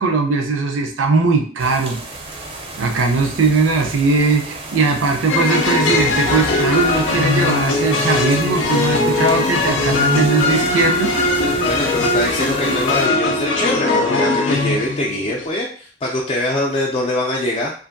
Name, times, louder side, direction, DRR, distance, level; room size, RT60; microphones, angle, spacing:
voice 1, 0.0-2.0 2.8-11.2, right 4 dB, 85° right, 4 dB, 0.5 m, -19 dB
sound 1, 1.6-13.1, right 2 dB, 30° right, 0.5 m, -33 dB
sound 2, 5.3-15.5, left 3 dB, 90° left, 0.5 m, -19 dB
voice 2, 11.6-17.7, left 1 dB, 30° left, -3 dB, 0.4 m, -23 dB
2.6 x 2.5 x 2.5 m, 0.44 s
head